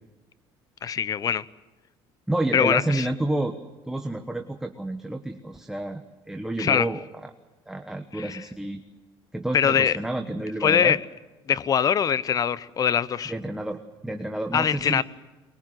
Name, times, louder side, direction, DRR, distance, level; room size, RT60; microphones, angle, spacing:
voice 1, 0.8-1.4 2.5-3.1 6.6-6.9 8.1-8.4 9.5-10.0 10.6-11.0 11.5-13.3 14.5-15.0, left 8 dB, 35° left, 0.8 m, -22 dB
voice 2, 2.3-3.6 3.9-6.0 6.3-7.3 7.7-8.8 9.3-11.0 13.3-15.0, right 1 dB, 5° right, 1.3 m, -29 dB
24.0 x 22.0 x 7.7 m
cardioid pair, 125°, 10 cm